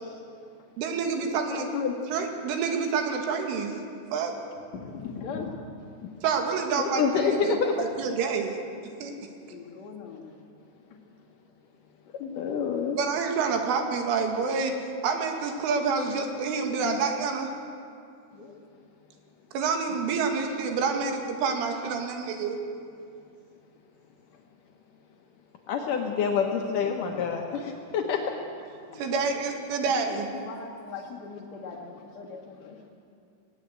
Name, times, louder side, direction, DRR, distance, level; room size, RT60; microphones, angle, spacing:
voice 1, 0.8-1.7 2.1-3.7 4.1-4.3 6.2-8.6 9.0-9.1 12.9-14.8 15.0-17.5 19.5-22.6 29.0-30.3, right 5 dB, 80° right, 4 dB, 4.4 m, -28 dB
voice 2, 1.5-2.0 4.7-5.7 6.0-6.4 7.4-7.9 9.5-10.3 10.9-11.0 12.2-12.3 18.3-18.5 24.3-24.4 26.3-27.5 28.8-29.0 29.9-32.9, left 6 dB, 50° left, -2 dB, 2.3 m, -39 dB
voice 3, 6.8-7.7 12.4-13.0 16.8-17.0 25.7-28.2, left 6 dB, 85° left, 2 dB, 1.8 m, -27 dB
20.0 x 18.5 x 8.2 m, 2.4 s
omnidirectional pair, 5.6 m